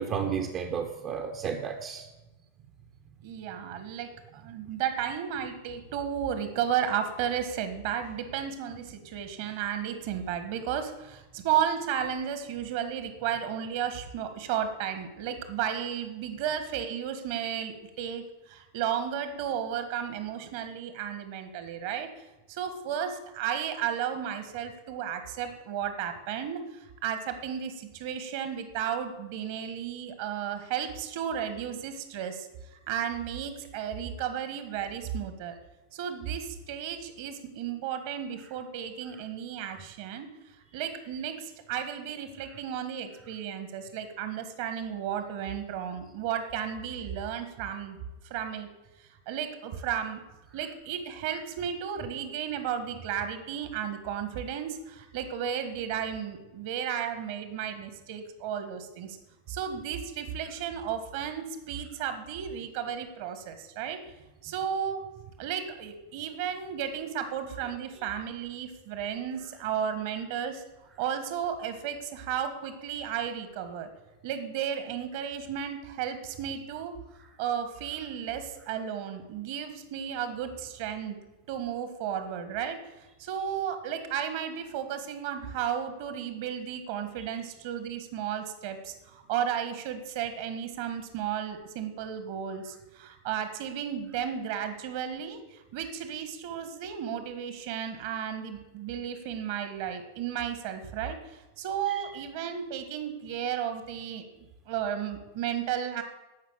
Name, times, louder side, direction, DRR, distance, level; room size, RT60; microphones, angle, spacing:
voice 1, 0.0-2.1 101.9-102.0, right 7 dB, 30° right, 4 dB, 1.0 m, -32 dB
voice 2, 3.2-35.6 35.9-40.3 40.7-48.0 48.3-48.7 49.0-50.2 50.5-59.2 59.5-64.0 64.4-65.0 65.4-70.6 71.0-73.9 74.2-77.0 77.4-81.2 81.5-104.2 104.7-106.0, right 9 dB, 50° right, 9 dB, 1.6 m, -33 dB
14.5 x 5.9 x 7.6 m, 1.0 s
figure-of-eight pair, 90°, 0 cm